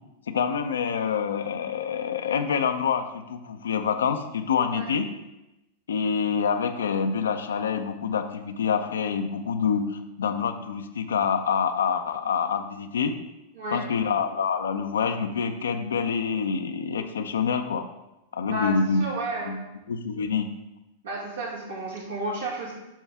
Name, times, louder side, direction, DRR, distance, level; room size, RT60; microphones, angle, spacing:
voice 1, 0.3-5.1 5.9-13.1 13.7-17.8 18.3-19.0 19.4-19.6 19.9-20.5, left 6 dB, 85° left, 8 dB, 0.6 m, -26 dB
voice 2, 13.5-13.9 18.5-18.7 19.0-19.6 21.0-22.7, right 2 dB, 85° right, -4 dB, 2.5 m, -32 dB
7.4 x 5.6 x 3.5 m, 0.96 s
hypercardioid pair, 105°, 0 cm